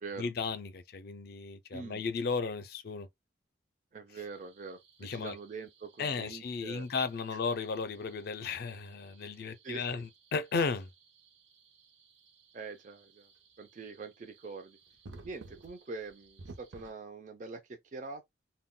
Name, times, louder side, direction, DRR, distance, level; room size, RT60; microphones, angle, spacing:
voice 1, 0.2-3.1 5.0-5.3 6.0-10.9, left 4 dB, 55° left, 0.4 m, -35 dB
voice 2, 1.7-2.0 3.9-4.8 5.1-6.9 9.6-9.9 12.5-13.3 13.6-14.8 15.2-18.3, right 4 dB, 40° right, 0.4 m, -44 dB
sound 1, 4.3-16.9, right 3 dB, 80° right, 0.6 m, -57 dB
2.2 x 2.1 x 3.6 m
head